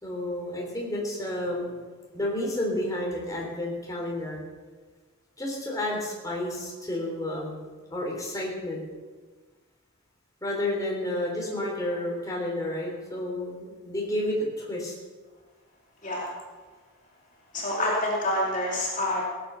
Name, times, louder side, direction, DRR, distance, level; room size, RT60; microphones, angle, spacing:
voice 1, 0.0-1.7 2.1-4.4 5.4-7.6 7.9-8.8 10.4-14.9, left 1 dB, 15° left, -2 dB, 3.4 m, -31 dB
voice 2, 17.5-19.2, left 1 dB, 35° left, -4 dB, 2.8 m, -27 dB
17.5 x 9.2 x 6.9 m, 1.4 s
head